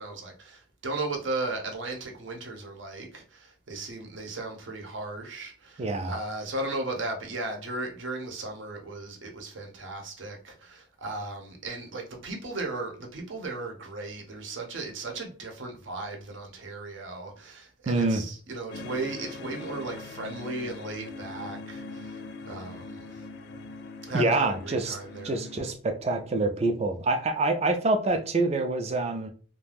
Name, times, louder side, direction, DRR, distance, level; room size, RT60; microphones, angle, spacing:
voice 1, 0.0-23.2 24.0-25.3, right 2 dB, 70° right, 0.7 m, -36 dB
voice 2, 5.8-6.2 17.9-18.2 24.1-25.0 25.2-29.3, right 2 dB, 30° right, 0.3 m, -26 dB
sound 1, 18.7-25.7, left 3 dB, 55° left, 0.3 m, -42 dB
2.4 x 2.2 x 3.3 m
head